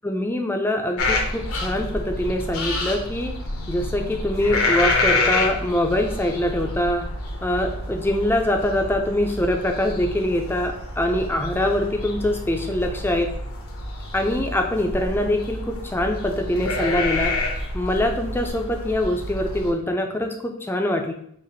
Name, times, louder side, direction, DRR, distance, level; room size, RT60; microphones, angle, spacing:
voice 1, 0.0-3.3 3.7-7.0 7.4-13.3 14.1-17.4 17.7-21.1, left 1 dB, 10° left, 3 dB, 0.4 m, -24 dB
sound 1, 1.0-19.7, left 2 dB, 80° left, 0.8 m, -28 dB
5.1 x 2.5 x 4.0 m, 0.69 s
head